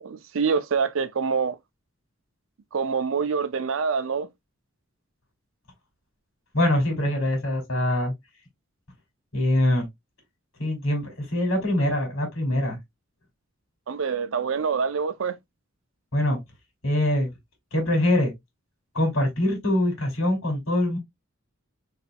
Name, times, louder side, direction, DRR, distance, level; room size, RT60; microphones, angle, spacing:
voice 1, 0.0-1.6 2.7-4.3 13.9-15.4, right 5 dB, 70° right, 0.5 m, -26 dB
voice 2, 6.5-8.1 9.3-9.9 10.6-12.8 16.1-16.4 16.8-17.3 17.7-18.3 18.9-21.0, left 1 dB, 90° left, 2.7 m, -23 dB
4.3 x 4.0 x 2.2 m
head